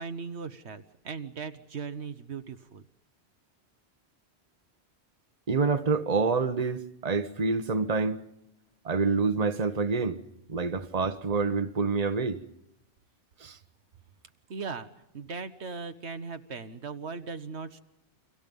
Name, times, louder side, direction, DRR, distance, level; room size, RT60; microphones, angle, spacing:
voice 1, 0.0-2.8 14.5-14.9 15.1-17.8, right 5 dB, 75° right, 1.4 m, -38 dB
voice 2, 5.5-8.2 8.8-10.2 10.5-12.4 13.4-13.6, right 4 dB, 35° right, 1.3 m, -27 dB
30.0 x 24.5 x 5.4 m
omnidirectional pair, 1.2 m